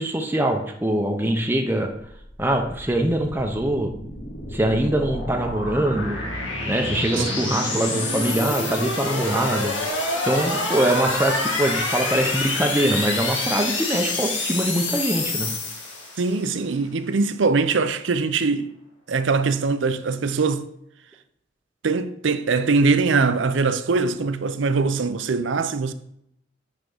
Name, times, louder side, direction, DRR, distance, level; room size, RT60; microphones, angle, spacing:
voice 1, 0.0-1.9 2.4-3.9 4.5-6.2 6.7-9.7 10.2-15.5, right 1 dB, 10° right, 0.7 m, -23 dB
sound 1, 2.1-16.5, left 2 dB, 80° left, 1.9 m, -27 dB
voice 2, 16.2-18.7 19.1-20.7 21.8-25.9, right 4 dB, 75° right, 0.6 m, -22 dB
9.1 x 3.7 x 5.5 m
head